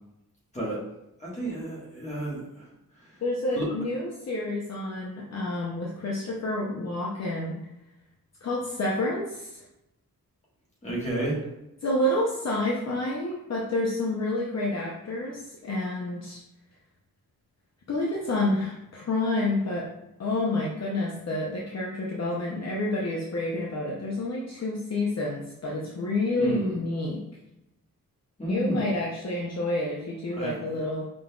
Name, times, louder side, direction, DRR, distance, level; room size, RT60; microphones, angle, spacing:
voice 1, 1.2-2.7 3.6-3.7 10.8-11.4 26.4-26.8 28.4-28.9 30.4-30.8, right 1 dB, 20° left, -5 dB, 1.3 m, -31 dB
voice 2, 3.2-7.6 8.4-9.6 11.8-16.4 17.9-19.9 20.2-27.2 28.5-31.0, left 2 dB, 50° left, -3 dB, 0.6 m, -29 dB
5.0 x 3.8 x 2.3 m, 0.90 s
wide cardioid pair, 155°, 34 cm